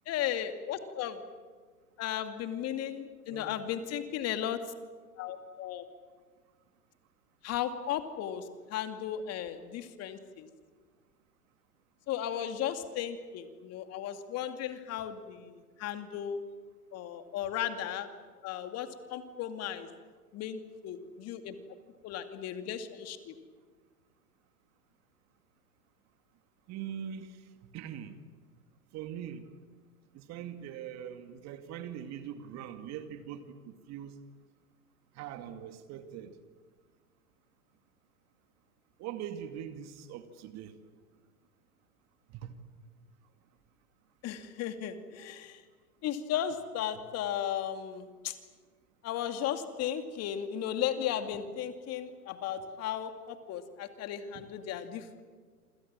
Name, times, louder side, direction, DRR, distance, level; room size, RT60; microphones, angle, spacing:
voice 1, 0.1-1.2 2.0-4.6 5.2-5.8 7.4-10.5 12.1-16.4 16.9-18.1 18.4-19.9 20.3-21.6 22.0-23.3 44.2-45.6 46.0-48.3 49.0-55.2, left 10 dB, 35° left, 8 dB, 2.4 m, -35 dB
voice 2, 3.3-3.9 26.7-27.4 27.7-28.2 28.9-29.5 30.1-34.2 35.1-36.3 39.0-40.8 42.3-42.5 54.4-54.5, right 9 dB, 35° right, 9 dB, 2.3 m, -42 dB
27.5 x 27.0 x 7.6 m, 1.5 s
hypercardioid pair, 110°, 46 cm